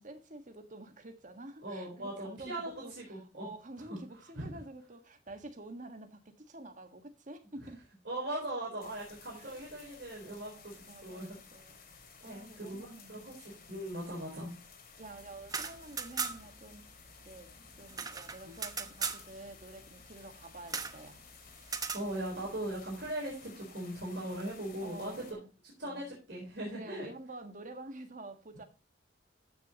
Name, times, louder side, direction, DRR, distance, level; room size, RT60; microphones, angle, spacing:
voice 1, 0.0-7.8 9.3-9.7 10.3-11.8 12.2-13.4 14.1-14.4 15.0-16.9 17.2-21.2 24.8-25.5 25.8-26.1 26.7-28.6, right 2 dB, 45° right, 1.6 m, -49 dB
voice 2, 1.6-3.5 3.9-4.0 4.4-4.5 8.1-10.7 11.0-11.4 12.2-14.5 21.9-25.4 25.8-27.1, right 1 dB, 60° right, 4.2 m, -39 dB
sound 1, 8.8-25.3, left 5 dB, 50° left, 2.4 m, -56 dB
sound 2, 15.4-16.6 16.9-17.0 17.2-19.2 20.7-21.0 21.6-22.1, right 5 dB, 20° right, 0.9 m, -37 dB
14.5 x 6.4 x 3.0 m
head